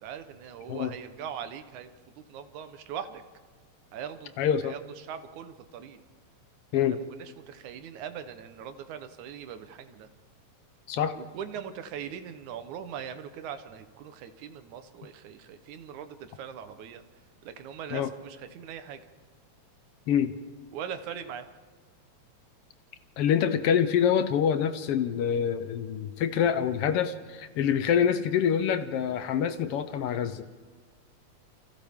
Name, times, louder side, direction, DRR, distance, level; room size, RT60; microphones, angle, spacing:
voice 1, 0.0-3.2 3.9-6.0 6.7-10.1 11.1-17.0 17.4-19.0 20.7-21.5, right 8 dB, 85° right, 9 dB, 2.5 m, -41 dB
voice 2, 4.4-4.7 6.7-7.0 10.9-11.2 17.9-18.1 20.1-20.3 23.2-30.4, left 8 dB, 70° left, 10 dB, 1.4 m, -26 dB
28.5 x 25.5 x 3.6 m, 1.4 s
omnidirectional pair, 3.3 m